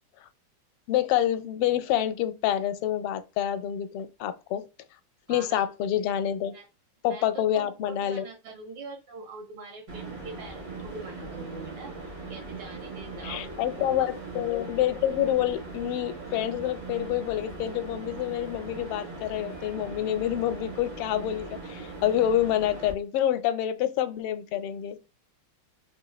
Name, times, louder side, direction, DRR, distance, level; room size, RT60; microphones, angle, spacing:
voice 1, 0.9-4.6 5.3-6.5 7.0-8.2 13.2-25.0, left 11 dB, 90° left, 1.5 m, -27 dB
voice 2, 5.3-5.7 6.5-6.7 7.0-14.5, right 3 dB, 80° right, 2.2 m, -44 dB
sound 1, 9.9-22.9, right 3 dB, 45° right, 2.1 m, -40 dB
4.0 x 3.8 x 2.3 m
omnidirectional pair, 2.4 m